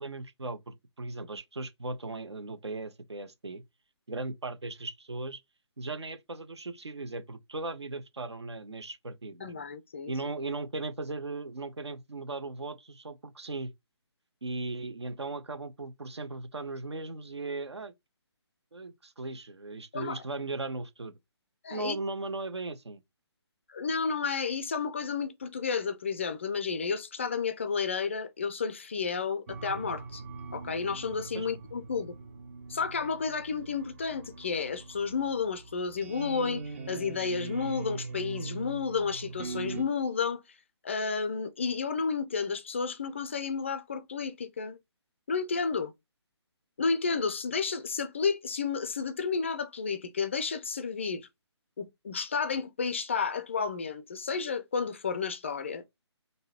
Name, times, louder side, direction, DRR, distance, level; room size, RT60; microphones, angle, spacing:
voice 1, 0.0-3.6 4.1-5.4 5.8-9.5 10.1-13.7 14.4-17.9 18.7-21.1 21.7-23.0 31.3-31.5, right 3 dB, 70° right, 0.8 m, -37 dB
voice 2, 9.4-10.1 19.9-20.2 21.6-22.0 23.7-30.2 30.5-32.1 32.7-40.4 40.8-44.8 45.3-45.9 46.8-51.3 51.8-55.9, left 5 dB, 25° left, 0.4 m, -31 dB
sound 1, 29.5-39.8, right 4 dB, 30° right, 0.6 m, -41 dB
3.7 x 2.6 x 4.2 m
figure-of-eight pair, 145°, 15 cm